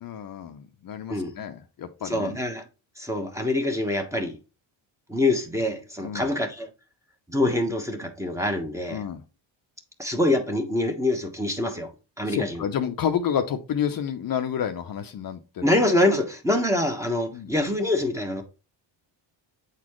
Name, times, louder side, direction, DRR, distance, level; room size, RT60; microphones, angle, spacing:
voice 1, 0.0-2.4 6.0-6.3 8.9-9.2 12.3-15.7 17.3-17.5, left 8 dB, 45° left, 0.8 m, -30 dB
voice 2, 2.0-2.6 3.0-4.4 5.1-6.7 7.3-9.0 10.0-11.9 12.2-12.7 15.6-18.4, left 1 dB, 5° right, 1.2 m, -25 dB
8.2 x 4.2 x 3.1 m
cardioid pair, 125°, 48 cm